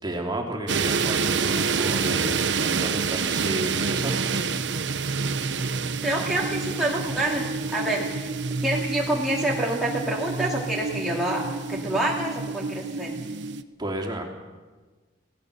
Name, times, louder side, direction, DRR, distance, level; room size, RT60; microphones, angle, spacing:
voice 1, 0.0-4.4 13.8-14.2, right 1 dB, 20° right, 2 dB, 3.1 m, -32 dB
sound 1, 0.7-13.6, right 5 dB, 65° right, 1.0 m, -28 dB
voice 2, 6.0-8.3 8.6-13.2, right 1 dB, ahead, -4 dB, 2.4 m, -27 dB
28.0 x 17.0 x 6.8 m, 1.3 s
head